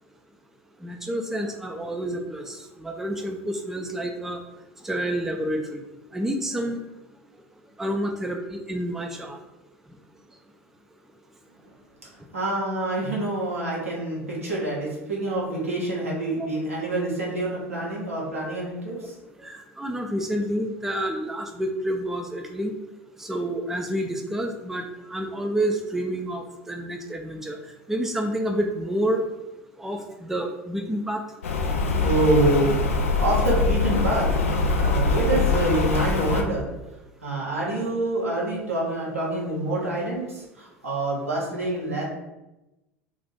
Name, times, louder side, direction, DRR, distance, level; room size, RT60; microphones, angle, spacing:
voice 1, 0.8-4.4 4.8-5.8 6.1-6.8 7.8-9.4 19.4-22.7 23.2-24.8 25.1-27.6 27.9-29.2 29.8-31.2, right 1 dB, 5° right, 3 dB, 0.4 m, -29 dB
voice 2, 12.1-19.2 32.0-32.8 33.2-34.3 34.8-36.6 37.2-42.1, right 2 dB, 85° right, -5 dB, 1.0 m, -26 dB
Rain, 31.4-36.4, left 3 dB, 75° left, 0.4 m, -23 dB
2.5 x 2.5 x 3.4 m, 0.98 s
figure-of-eight pair, 75°, 7 cm